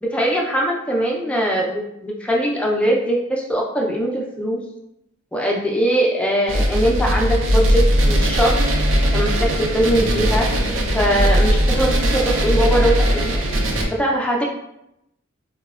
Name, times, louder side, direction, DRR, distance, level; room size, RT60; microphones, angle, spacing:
voice 1, 0.0-4.6 5.3-8.6 9.1-10.5 10.9-13.3 13.9-14.4, right 1 dB, 5° left, -1 dB, 0.4 m, -21 dB
sound 1, 6.5-13.8, equal, 65° right, 0.5 m, -19 dB
3.9 x 2.1 x 2.3 m, 0.84 s
head